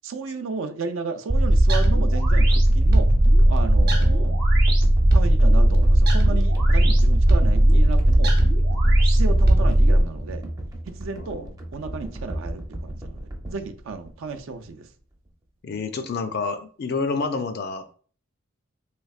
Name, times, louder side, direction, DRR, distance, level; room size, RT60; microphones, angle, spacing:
voice 1, 0.0-3.1 3.5-4.4 5.1-8.4 9.0-10.4 10.9-13.2 13.5-14.9, right 4 dB, 75° right, 0.4 m, -33 dB
sound 1, 1.3-10.0, right 1 dB, 50° right, 0.8 m, -17 dB
sound 2, 2.5-14.8 15.1-15.3, right 1 dB, 20° right, 0.5 m, -37 dB
voice 2, 11.2-11.5 15.6-17.9, left 4 dB, 50° left, 0.4 m, -28 dB
3.4 x 3.1 x 2.4 m
head